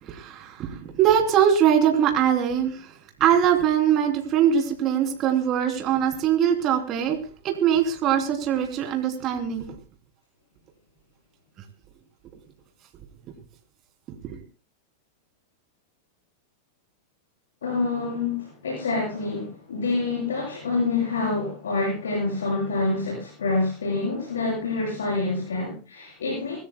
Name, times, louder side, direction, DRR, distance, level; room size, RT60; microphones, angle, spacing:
voice 1, 0.0-2.9 3.2-7.2 7.4-9.8 14.2-14.4, right 9 dB, 40° right, 4 dB, 3.1 m, -22 dB
voice 2, 17.6-26.6, left 3 dB, 80° left, -3 dB, 7.6 m, -27 dB
25.5 x 16.5 x 2.2 m, 0.33 s
hypercardioid pair, 100°, 0 cm